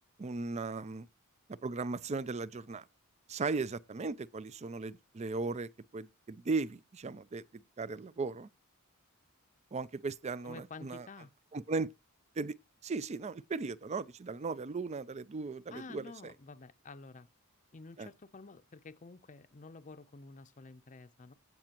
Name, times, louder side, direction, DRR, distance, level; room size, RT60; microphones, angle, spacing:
voice 1, 0.2-1.1 1.5-2.9 3.3-7.4 7.8-8.5 9.7-11.1 11.5-11.9 12.4-12.5 12.8-16.0 18.0-18.1, right 4 dB, 30° right, 0.4 m, -37 dB
voice 2, 10.4-11.3 15.7-17.3 17.7-21.3, left 3 dB, 35° left, 0.6 m, -50 dB
16.5 x 5.9 x 2.9 m
head